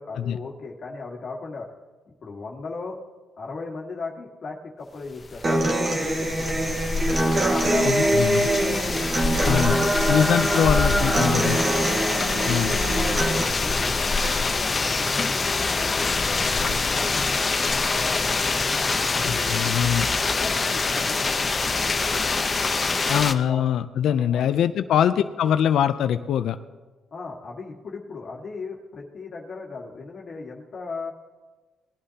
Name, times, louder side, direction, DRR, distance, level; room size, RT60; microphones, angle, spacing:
voice 1, 0.0-1.7 2.2-3.0 3.4-6.5 7.0-8.7 9.2-10.3 11.0-12.5 13.2-18.4 19.2-19.6 20.3-22.1 23.0-23.2 23.5-23.6 24.1-24.7 27.1-31.1, left 4 dB, 50° left, -2 dB, 1.7 m, -37 dB
sound 1, 5.2-23.3, left 3 dB, 30° left, 0.9 m, -25 dB
Human voice / Acoustic guitar, 5.4-13.4, right 1 dB, 40° right, 1.8 m, -23 dB
voice 2, 7.9-8.5 9.4-9.8 10.1-11.6 12.5-12.7 19.2-20.1 23.1-26.6, left 9 dB, 75° left, 10 dB, 0.5 m, -23 dB
19.5 x 11.0 x 2.9 m, 1.3 s
cardioid pair, 90°, 0 cm